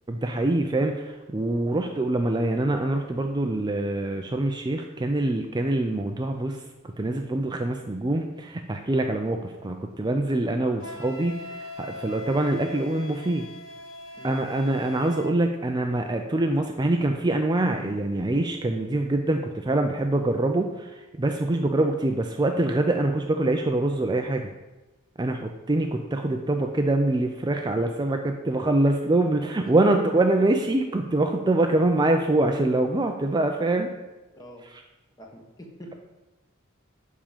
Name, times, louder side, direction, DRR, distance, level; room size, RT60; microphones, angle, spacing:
voice 1, 0.1-6.6 7.0-13.5 14.2-24.5 25.2-33.9, right 2 dB, 20° right, 4 dB, 0.5 m, -24 dB
Wind instrument woodwind instrument, 10.8-15.3, left 1 dB, 70° left, 1.3 m, -41 dB
voice 2, 34.3-34.6 35.2-35.9, equal, 20° left, 1 dB, 1.4 m, -45 dB
9.9 x 3.7 x 7.3 m, 1.1 s
head